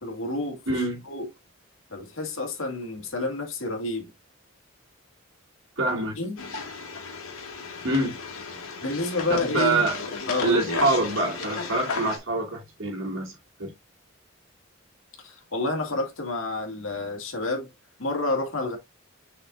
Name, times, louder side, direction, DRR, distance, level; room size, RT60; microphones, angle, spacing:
voice 1, 0.0-0.8 1.1-1.3 1.9-4.1 6.2-6.4 8.8-9.8 10.3-10.7 15.2-17.7 18.0-18.8, left 2 dB, 70° left, 2.1 m, -29 dB
voice 2, 0.7-1.0 5.8-6.1 7.8-8.2 9.3-9.9 10.4-13.3 13.6-13.7, right 2 dB, 70° right, 2.9 m, -25 dB
sound 1, 6.4-12.2, left 4 dB, 90° left, 2.1 m, -34 dB
6.7 x 5.8 x 2.5 m
head